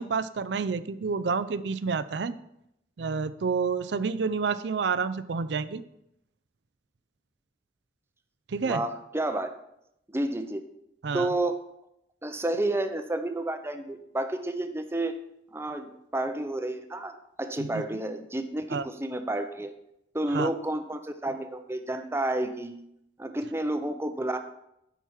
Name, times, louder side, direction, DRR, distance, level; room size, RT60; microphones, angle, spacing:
voice 1, 0.0-2.3 3.0-5.8 8.5-8.8 11.0-11.3 17.6-17.8 18.7-18.8 20.3-20.5, right 5 dB, 70° right, 15 dB, 0.5 m, -29 dB
voice 2, 8.6-9.5 10.1-10.6 11.1-11.6 12.2-15.2 15.5-19.7 20.1-22.8 23.2-24.4, right 1 dB, 15° right, 8 dB, 0.6 m, -30 dB
9.1 x 5.9 x 4.7 m, 0.80 s
head